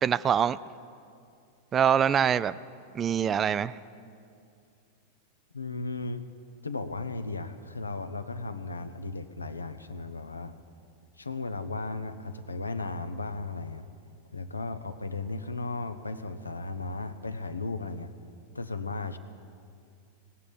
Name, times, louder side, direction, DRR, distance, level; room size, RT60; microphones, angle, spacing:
voice 1, 0.0-0.6 1.7-2.5 2.9-3.7, right 8 dB, 25° right, 17 dB, 0.3 m, -24 dB
voice 2, 5.5-6.2 6.6-10.5 11.2-13.9 14.3-18.1 18.5-19.2, left 3 dB, 80° left, 11 dB, 0.7 m, -35 dB
18.5 x 7.5 x 8.4 m, 2.4 s
figure-of-eight pair, 90°, 0 cm